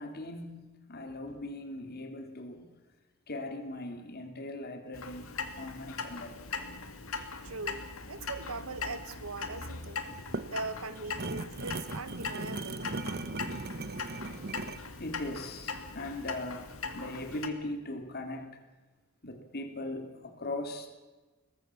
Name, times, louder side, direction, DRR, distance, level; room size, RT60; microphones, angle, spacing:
voice 1, 0.0-2.7 3.3-6.5 15.0-18.6 19.2-20.9, left 1 dB, 50° left, 6 dB, 2.8 m, -40 dB
Clock, 4.9-17.5, left 4 dB, 75° left, 2.3 m, -40 dB
voice 2, 7.4-10.0 10.5-12.9, right 3 dB, 80° right, 14 dB, 1.3 m, -40 dB
sound 1, 10.1-14.9, right 3 dB, 50° right, 1.0 m, -38 dB
22.5 x 19.5 x 7.1 m, 1.2 s
head